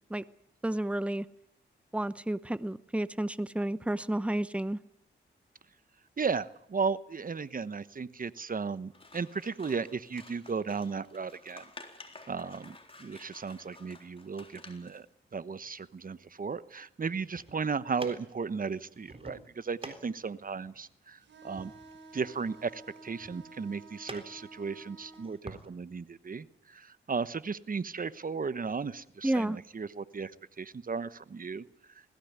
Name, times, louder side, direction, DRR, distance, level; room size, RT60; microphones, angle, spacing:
voice 1, 0.6-1.3 1.9-4.8 29.2-29.6, right 1 dB, 5° right, 16 dB, 0.9 m, -31 dB
voice 2, 6.2-11.7 12.3-15.1 15.3-21.2 21.4-21.7 22.1-30.3 30.6-31.6, right 5 dB, 45° right, 15 dB, 1.1 m, -35 dB
Scissors, 8.9-15.0, left 2 dB, 30° left, 3.8 m, -52 dB
sound 1, 17.2-25.6, right 2 dB, 30° right, 3.7 m, -50 dB
sound 2, 21.2-25.3, right 3 dB, 70° right, 5.8 m, -52 dB
21.0 x 16.0 x 9.7 m, 0.77 s
cardioid pair, 60°, 20 cm